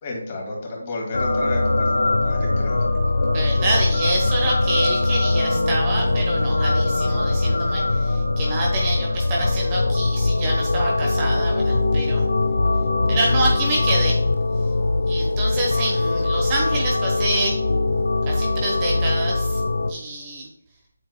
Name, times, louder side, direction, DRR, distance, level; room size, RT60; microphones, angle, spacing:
voice 1, 0.0-2.8 3.6-3.7, left 2 dB, 30° left, -2 dB, 2.3 m, -32 dB
sound 1, 1.1-19.9, left 2 dB, 80° left, 0.9 m, -21 dB
voice 2, 3.3-12.3 13.1-14.2 15.1-17.6 18.3-19.6 19.9-20.5, right 2 dB, 20° right, -2 dB, 1.0 m, -27 dB
7.8 x 6.3 x 2.2 m, 0.74 s
figure-of-eight pair, 165°, 0 cm